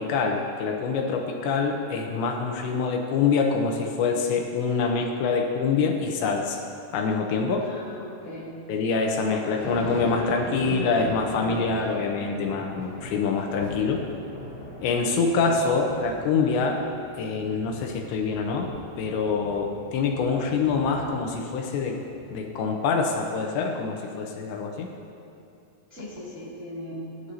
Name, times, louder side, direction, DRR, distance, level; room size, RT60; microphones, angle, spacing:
voice 1, 0.0-6.6 6.9-7.7 8.7-14.0 14.8-16.8 17.2-18.7 19.0-22.0 22.3-24.9, left 4 dB, 80° left, 2 dB, 3.0 m, -25 dB
voice 2, 7.6-8.6 25.9-27.3, equal, 30° right, -7 dB, 1.5 m, -39 dB
Thunderstorm lightning strike, 9.6-22.3, left 1 dB, 10° left, 2.2 m, -40 dB
19.0 x 11.0 x 2.7 m, 2.8 s
omnidirectional pair, 5.4 m